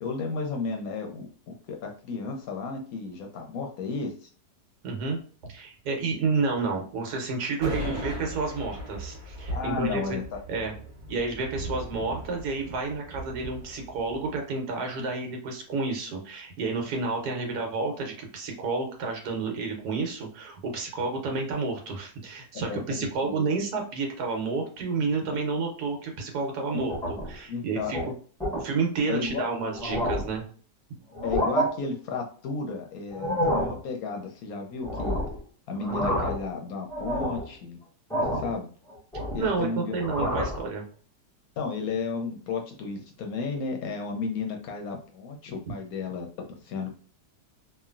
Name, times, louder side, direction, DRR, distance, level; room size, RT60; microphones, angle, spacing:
voice 1, 0.0-4.3 7.8-8.1 9.5-10.2 15.0-15.1 22.5-23.5 26.7-26.9 27.5-28.1 29.1-29.5 31.2-35.2 35.7-37.8 38.2-38.7 39.3-39.9 41.6-46.9, left 4 dB, 70° left, 3 dB, 0.9 m, -33 dB
voice 2, 4.8-5.2 5.5-10.2 10.5-10.7 11.1-26.9 27.3-28.1 28.5-30.4 39.3-40.8, right 4 dB, 70° right, 2 dB, 1.3 m, -30 dB
sound 1, 7.6-14.4, right 1 dB, 35° right, 1.1 m, -38 dB
sound 2, 26.8-27.4 27.8-28.0 28.4-28.6 29.2-29.3 29.7-30.4 31.1-31.7 33.1-33.8 34.8-35.4 35.7-36.5 36.9-37.5 38.1-38.5 38.9-39.6 39.9-40.6, equal, 5° left, 0.5 m, -28 dB
3.0 x 2.5 x 2.4 m, 0.43 s
omnidirectional pair, 1.8 m